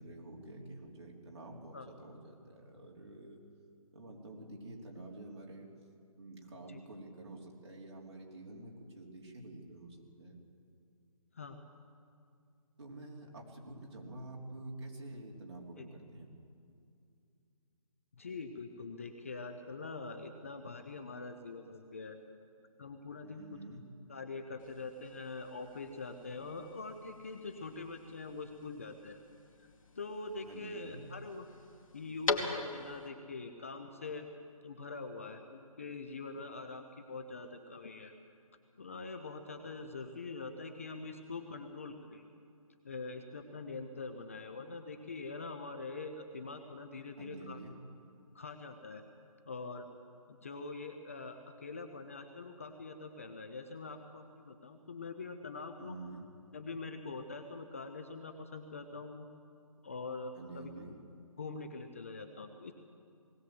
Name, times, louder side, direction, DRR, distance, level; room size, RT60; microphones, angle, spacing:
voice 1, 0.0-3.4 3.9-5.7 6.1-10.4 12.8-16.3 23.2-23.8 30.4-31.0 47.2-47.8 55.8-56.3 60.3-60.9, right 2 dB, 45° right, -2 dB, 3.8 m, -48 dB
voice 2, 18.2-22.2 22.8-23.6 24.1-29.2 30.0-31.5 31.9-34.3 34.6-38.1 38.8-42.2 42.8-47.6 48.3-49.0 49.5-49.9 50.3-56.0 56.5-59.3 59.8-60.7 61.4-62.7, left 3 dB, 25° left, 7 dB, 0.7 m, -44 dB
sound 1, 24.6-33.1, left 3 dB, 65° left, 2.4 m, -43 dB
19.5 x 17.5 x 7.8 m, 2.4 s
hypercardioid pair, 170°, 19 cm